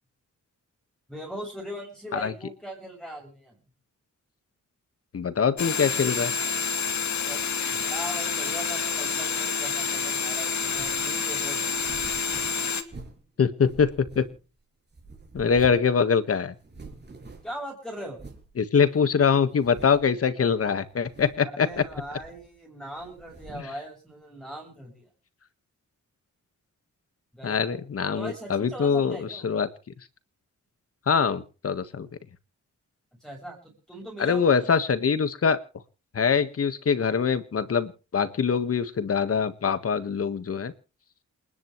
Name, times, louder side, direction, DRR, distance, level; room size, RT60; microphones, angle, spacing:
voice 1, 1.1-3.6 7.2-7.5 7.9-11.7 17.4-18.2 21.5-25.1 27.3-27.8 28.2-29.5 33.2-34.5, equal, ahead, -1 dB, 7.3 m, -40 dB
voice 2, 5.1-6.3 7.6-7.7 13.4-14.2 15.3-16.5 18.6-21.7 23.5-23.7 27.4-29.7 31.1-32.1 34.2-35.6 36.1-40.7, left 6 dB, 50° left, 12 dB, 1.7 m, -24 dB
sound 1, 5.6-12.8, left 5 dB, 65° left, 2.3 m, -28 dB
sound 2, 10.6-11.1 11.6-13.3 13.6-14.6 14.9-16.0 16.2-16.3 16.6-17.6 18.2-18.5 19.0-19.1 19.5-20.2 20.9-21.5 21.7-22.6 23.0-23.8, right 3 dB, 35° right, 6.3 m, -46 dB
28.5 x 10.5 x 3.2 m, 0.36 s
wide cardioid pair, 175°, 30 cm